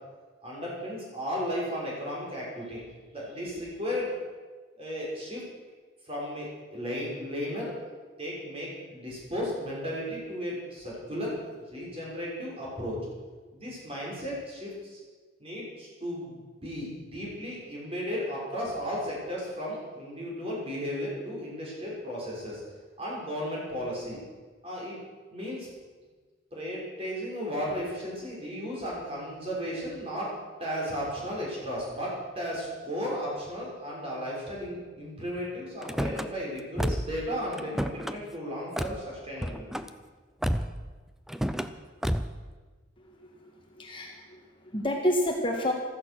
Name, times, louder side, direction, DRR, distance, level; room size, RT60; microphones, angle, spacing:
voice 1, 0.4-2.8 3.1-4.2 4.8-5.5 6.0-7.9 8.2-13.0 13.5-15.0 15.4-22.6 23.0-24.2 24.6-25.0 25.3-25.7 26.5-30.3 30.6-39.7, equal, 30° right, -4 dB, 6.2 m, -35 dB
Car / Slam, 35.8-36.3 36.8-37.2 37.5-38.2 38.8-39.0 39.4-39.9 40.4-40.8 41.3-41.7 42.0-42.4, equal, ahead, 0.5 m, -30 dB
voice 2, 43.1-45.7, left 1 dB, 25° left, 1 dB, 1.5 m, -30 dB
15.0 x 14.0 x 6.2 m, 1.4 s
head